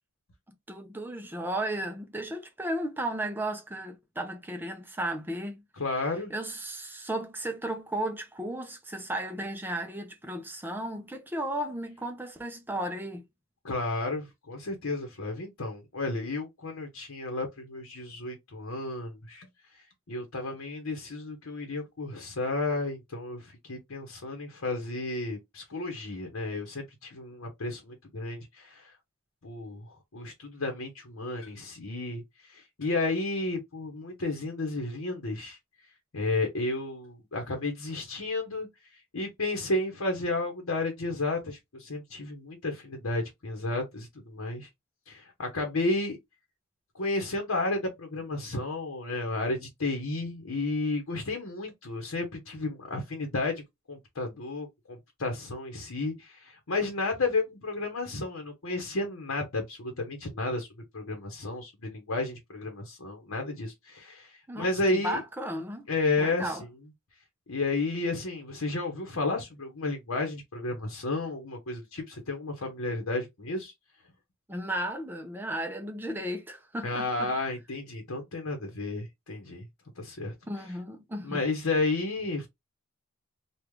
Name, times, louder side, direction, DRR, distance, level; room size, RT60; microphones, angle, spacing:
voice 1, 0.7-5.6 6.3-13.2 64.5-65.9 66.2-66.6 74.5-77.3 80.5-81.4, right 1 dB, 10° right, 0.5 m, -34 dB
voice 2, 5.8-6.3 13.6-19.5 20.1-28.9 29.4-35.6 36.1-38.7 39.1-44.7 45.1-46.2 46.9-53.6 53.9-60.7 60.9-65.2 65.9-66.6 67.5-73.7 76.8-79.7 80.0-80.3 81.2-82.5, left 2 dB, 80° left, 0.9 m, -32 dB
3.2 x 2.4 x 3.5 m
head